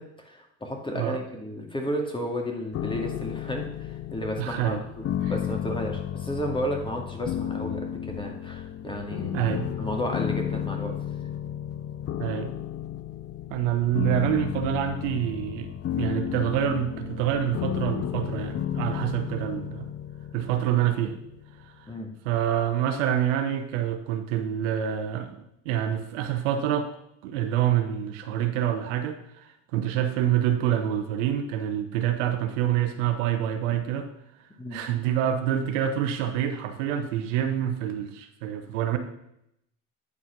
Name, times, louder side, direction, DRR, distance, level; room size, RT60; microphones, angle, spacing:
voice 1, 0.0-9.4 9.8-10.9 21.9-22.1 34.6-34.8, equal, 15° left, 1 dB, 2.2 m, -33 dB
sound 1, 2.7-21.7, left 10 dB, 40° left, 0.6 m, -33 dB
voice 2, 4.4-4.8 5.2-5.3 9.3-9.7 12.2-12.5 13.5-19.9 20.3-21.2 21.6-21.9 22.2-26.9 27.2-34.1 34.7-39.0, right 10 dB, 80° right, 7 dB, 1.1 m, -27 dB
9.8 x 4.2 x 6.0 m, 0.79 s
hypercardioid pair, 80°, 37 cm